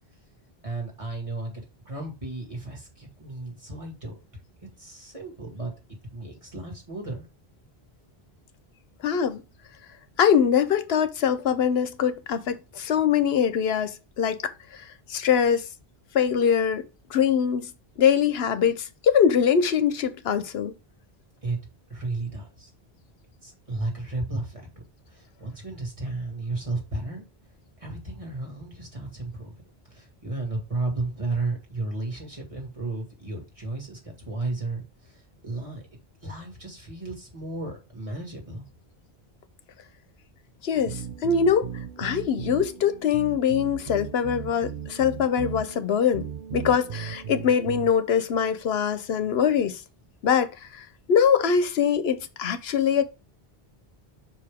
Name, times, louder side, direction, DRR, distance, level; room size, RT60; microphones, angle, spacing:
voice 1, 0.6-4.2 4.8-5.7 6.1-7.2 21.4-21.6 21.9-22.7 23.4-24.6 25.1-27.2 27.8-29.5 29.9-38.6, right 2 dB, 35° right, 2.1 m, -33 dB
voice 2, 9.0-9.4 10.2-14.8 15.1-15.7 16.1-16.8 17.1-17.7 18.0-20.7 40.6-41.7 42.0-46.3 46.5-49.8 50.2-53.0, left 7 dB, 85° left, 1.0 m, -23 dB
sound 1, 40.7-47.9, right 8 dB, 60° right, 0.7 m, -37 dB
5.7 x 4.8 x 3.5 m
omnidirectional pair, 1.0 m